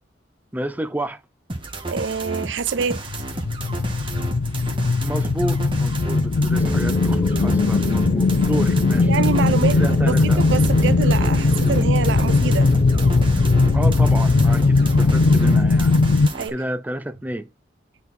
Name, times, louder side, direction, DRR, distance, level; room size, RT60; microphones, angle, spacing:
voice 1, 0.5-1.2 5.0-9.1 9.7-10.4 13.7-15.9 16.5-17.5, right 1 dB, 10° right, 0.5 m, -30 dB
sound 1, 1.5-16.5, right 2 dB, 30° right, 1.4 m, -32 dB
voice 2, 1.8-3.0 9.1-12.7 16.3-16.5, right 5 dB, 85° right, 0.5 m, -26 dB
sound 2, 3.0-16.3, left 3 dB, 80° left, 0.5 m, -19 dB
sound 3, 6.6-15.8, left 1 dB, 30° left, 0.7 m, -26 dB
10.5 x 4.1 x 4.4 m
head